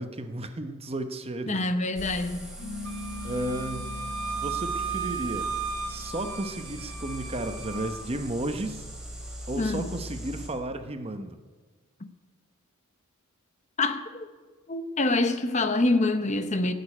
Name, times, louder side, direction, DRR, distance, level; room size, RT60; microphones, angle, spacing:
voice 1, 0.0-1.7 3.2-3.8 4.3-5.5 5.9-8.9 9.5-11.4, right 1 dB, 25° right, 0.8 m, -33 dB
voice 2, 1.5-2.5 9.6-9.9 13.8-14.3 14.7-16.7, left 2 dB, 30° left, 0.8 m, -26 dB
sound 1, 2.0-10.5, equal, 5° right, 2.8 m, -40 dB
sound 2, 2.6-7.5, left 1 dB, 65° left, 3.0 m, -43 dB
Wind instrument woodwind instrument, 2.8-8.1, right 5 dB, 70° right, 1.5 m, -35 dB
16.0 x 6.9 x 9.8 m
head